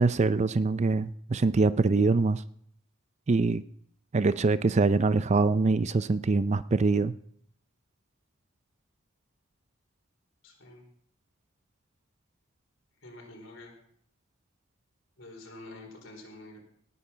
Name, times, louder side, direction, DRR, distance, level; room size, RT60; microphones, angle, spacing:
voice 1, 0.0-2.4 3.3-3.6 4.1-7.1, right 3 dB, 35° right, 15 dB, 0.4 m, -24 dB
voice 2, 10.4-10.8 13.0-13.7 15.2-16.6, left 2 dB, 65° left, 1 dB, 4.1 m, -47 dB
18.5 x 8.5 x 5.6 m, 0.64 s
head